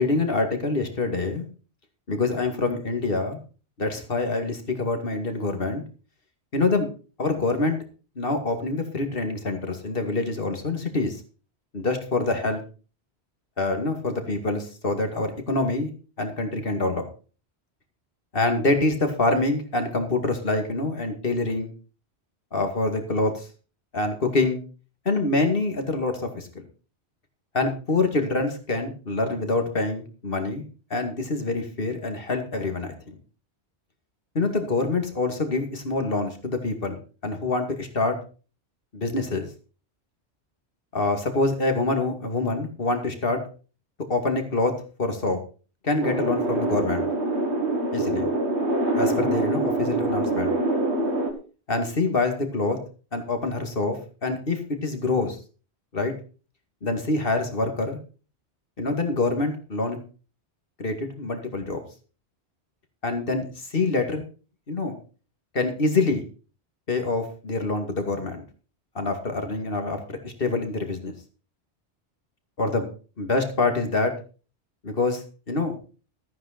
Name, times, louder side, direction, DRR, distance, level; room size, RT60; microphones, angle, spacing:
voice 1, 0.0-1.5 2.1-3.4 3.8-5.8 6.5-6.9 7.2-7.8 8.2-11.2 11.7-12.6 13.6-15.9 16.2-17.0 18.3-21.7 22.5-23.5 23.9-24.6 25.1-26.5 27.5-30.6 30.9-33.2 34.3-37.0 37.2-38.2 38.9-39.5 40.9-43.4 44.1-44.7 45.0-45.4 45.8-47.0 47.9-48.3 48.9-50.5 51.7-52.8 53.1-55.4 55.9-56.1 56.8-58.0 58.8-60.0 60.8-61.8 63.0-64.2 64.7-64.9 65.5-66.2 66.9-68.4 68.9-71.1 72.6-72.9 73.2-74.1 74.8-75.8, left 3 dB, 55° left, 6 dB, 2.5 m, -25 dB
sound 1, 46.0-51.3, right 2 dB, 85° right, 2.2 m, -25 dB
14.0 x 9.3 x 4.3 m, 0.36 s
omnidirectional pair, 1.1 m